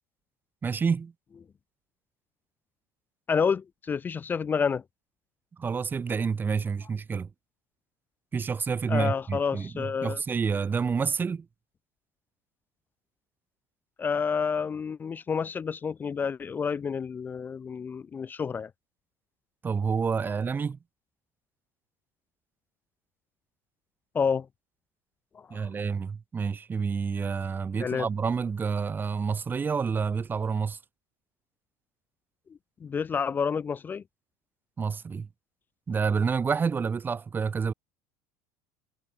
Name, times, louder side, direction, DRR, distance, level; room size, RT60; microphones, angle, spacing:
voice 1, 0.6-1.1 5.6-7.3 8.3-11.5 19.6-20.8 25.5-30.8 34.8-35.3 35.9-37.7, right 5 dB, 15° right, 3.7 m, -28 dB
voice 2, 3.3-4.8 8.9-10.2 14.0-18.7 24.1-24.5 25.3-25.7 27.8-28.1 32.8-34.0, left 6 dB, 15° left, 0.4 m, -29 dB
cardioid pair, 165°, 11 cm